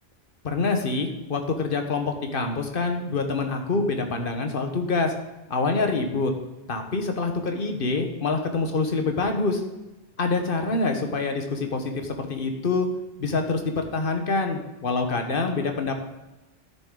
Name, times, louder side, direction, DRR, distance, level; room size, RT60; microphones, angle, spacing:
voice 1, 0.4-5.1 5.5-6.3 6.7-9.6 10.2-12.9 13.2-16.0, left 3 dB, 60° left, 5 dB, 1.4 m, -26 dB
13.5 x 6.9 x 3.8 m, 1.1 s
omnidirectional pair, 1.0 m